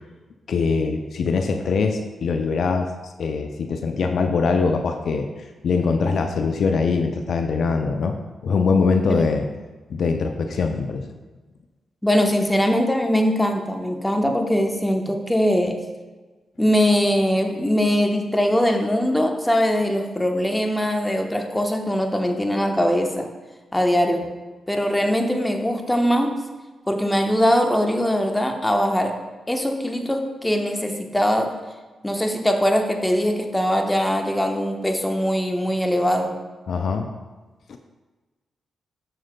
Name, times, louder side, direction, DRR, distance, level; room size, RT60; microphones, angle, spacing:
voice 1, 0.5-5.3 5.6-8.2 8.4-9.5 9.9-11.0 36.7-37.1 37.7-37.8, left 4 dB, 65° left, 6 dB, 0.4 m, -22 dB
voice 2, 12.0-15.8 16.6-23.3 23.7-24.3 24.7-26.4 26.9-29.2 29.5-31.6 32.0-36.4, equal, 10° left, 4 dB, 0.9 m, -21 dB
7.5 x 6.3 x 2.2 m, 1.3 s
hypercardioid pair, 40°, 0 cm